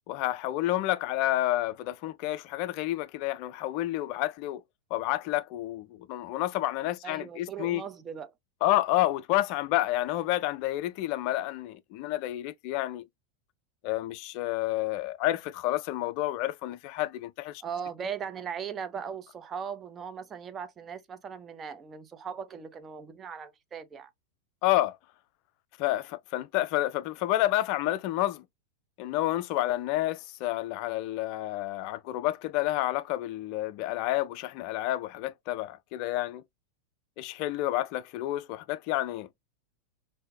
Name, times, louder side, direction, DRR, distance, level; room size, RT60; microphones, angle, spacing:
voice 1, 0.1-4.6 4.9-7.8 8.6-13.1 13.8-17.6 24.6-25.0 25.8-28.4 29.0-36.4 37.2-39.3, left 15 dB, 45° left, 0.3 m, -29 dB
voice 2, 7.0-8.3 17.6-24.1, right 7 dB, 25° right, 0.5 m, -38 dB
3.6 x 2.6 x 2.5 m
figure-of-eight pair, 90°, 0 cm